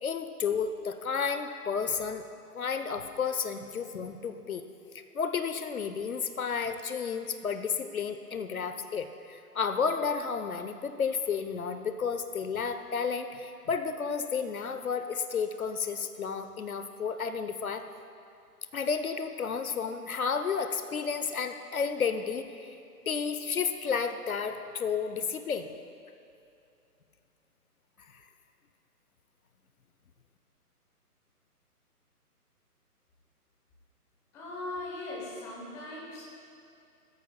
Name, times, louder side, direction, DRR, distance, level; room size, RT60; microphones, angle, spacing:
voice 1, 0.0-2.2 2.5-4.7 5.1-17.8 18.7-22.8 23.1-25.7 28.0-28.2, left 6 dB, 65° left, 9 dB, 0.8 m, -32 dB
voice 2, 34.3-36.2, left 2 dB, 5° left, -5 dB, 0.9 m, -39 dB
19.5 x 13.0 x 2.3 m, 2.6 s
figure-of-eight pair, 145°, 47 cm